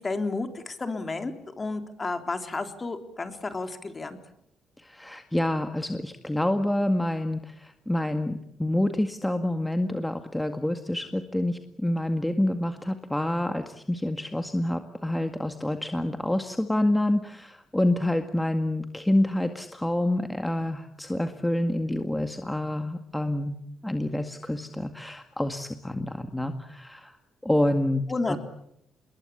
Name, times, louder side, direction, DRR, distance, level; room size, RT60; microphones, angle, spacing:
voice 1, 0.0-4.2 28.1-28.4, left 3 dB, 30° left, 7 dB, 3.6 m, -32 dB
voice 2, 4.8-23.5 23.8-27.2 27.4-28.0 28.3-28.4, left 1 dB, 10° left, 6 dB, 1.9 m, -27 dB
27.0 x 21.5 x 8.6 m, 0.74 s
cardioid pair, 90°, 0 cm